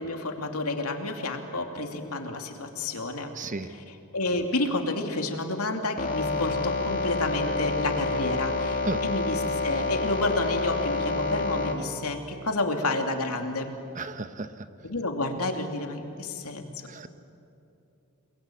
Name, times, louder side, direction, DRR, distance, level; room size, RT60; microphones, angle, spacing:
voice 1, 0.0-3.3 3.7-13.7 14.8-16.7, left 2 dB, 90° left, 4 dB, 2.8 m, -30 dB
voice 2, 3.4-3.7 8.8-9.0 13.9-14.5 16.9-17.1, right 3 dB, 35° right, 10 dB, 1.0 m, -33 dB
sound 1, 6.0-11.7, left 3 dB, 40° left, 2.9 m, -28 dB
29.0 x 22.0 x 9.2 m, 2.8 s
head